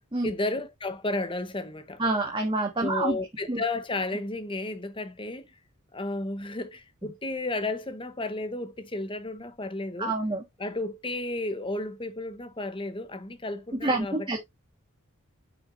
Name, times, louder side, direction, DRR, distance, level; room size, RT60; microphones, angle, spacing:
voice 1, 0.2-2.0 2.8-5.5 5.9-10.1 10.6-14.4, left 2 dB, 25° left, 1.0 m, -33 dB
voice 2, 2.0-3.2 3.5-3.6 10.0-10.4 13.7-14.4, right 2 dB, 25° right, 1.5 m, -27 dB
8.7 x 6.1 x 2.6 m
head